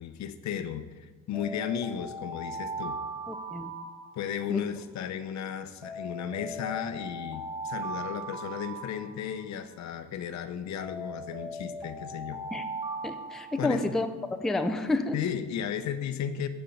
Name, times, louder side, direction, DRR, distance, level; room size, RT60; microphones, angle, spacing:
voice 1, 0.0-3.0 4.2-12.4 13.6-13.8 15.1-16.5, left 9 dB, 55° left, 11 dB, 0.7 m, -34 dB
Alarm, 1.3-4.6 5.8-9.6 10.8-14.1, right 2 dB, 15° right, 1.3 m, -39 dB
voice 2, 3.3-3.7 4.5-4.6 12.5-12.7 13.0-14.1 14.4-15.2, left 2 dB, ahead, 7 dB, 0.4 m, -29 dB
9.1 x 4.5 x 5.3 m, 1.4 s
supercardioid pair, 80°, 33 cm